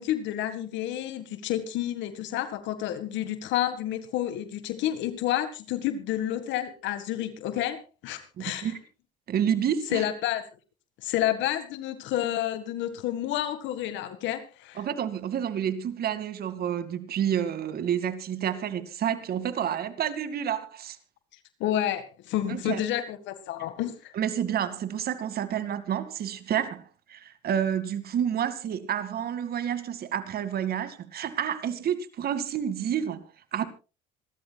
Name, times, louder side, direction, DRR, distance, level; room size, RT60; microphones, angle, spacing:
voice 1, 0.0-8.7 9.9-10.4 11.0-14.8 21.6-24.1, left 12 dB, 70° left, 1.9 m, -30 dB
voice 2, 8.4-8.8 9.3-10.0 14.8-21.0 22.5-22.8 24.1-26.8 27.1-33.2 33.5-33.7, right 9 dB, 50° right, 2.3 m, -29 dB
27.0 x 13.0 x 2.4 m
supercardioid pair, 90°, 20 cm